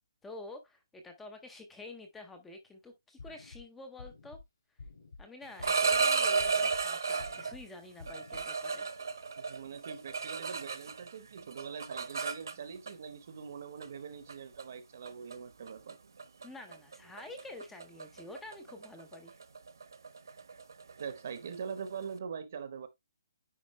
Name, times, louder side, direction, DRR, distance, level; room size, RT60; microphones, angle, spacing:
voice 1, 0.2-4.4 5.2-8.9 16.4-19.4, left 2 dB, 5° left, 0.6 m, -48 dB
Cardiac and Pulmonary Sounds, 3.2-3.6 4.0-4.4 4.8-5.2 5.6-6.0 6.4-6.8 7.2-7.6 8.0-8.4, left 3 dB, 65° left, 4.1 m, -49 dB
sound 1, 5.4-7.5 8.1-11.1 11.4-12.9 13.8-14.0 14.3-14.6 15.1-15.3 15.7-15.9 16.2-16.5 16.7-22.1, right 5 dB, 65° right, 1.1 m, -33 dB
voice 2, 9.4-16.0 21.0-22.9, right 6 dB, 35° right, 0.9 m, -43 dB
9.6 x 4.2 x 3.2 m
hypercardioid pair, 180°, 2 cm